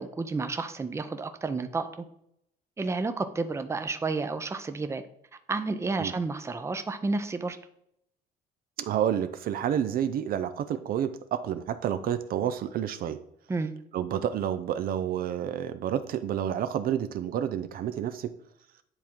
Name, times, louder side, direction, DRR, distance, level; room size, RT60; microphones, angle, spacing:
voice 1, 0.0-2.0 2.8-5.0 5.5-7.6 13.5-13.7, right 3 dB, 15° right, 9 dB, 0.6 m, -31 dB
voice 2, 8.8-13.2 13.9-18.3, right 9 dB, 60° right, 11 dB, 0.5 m, -29 dB
9.8 x 3.6 x 4.5 m, 0.75 s
cardioid pair, 110°, 17 cm